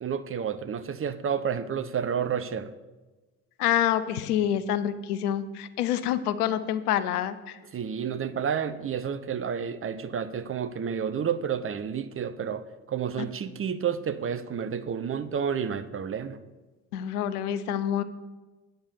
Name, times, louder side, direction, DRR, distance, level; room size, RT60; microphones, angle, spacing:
voice 1, 0.0-2.7 7.7-16.4, right 7 dB, 30° right, 12 dB, 0.6 m, -30 dB
voice 2, 3.6-7.6 16.9-18.0, left 10 dB, 75° left, 13 dB, 0.7 m, -27 dB
8.9 x 7.8 x 6.9 m, 1.2 s
figure-of-eight pair, 45°, 46 cm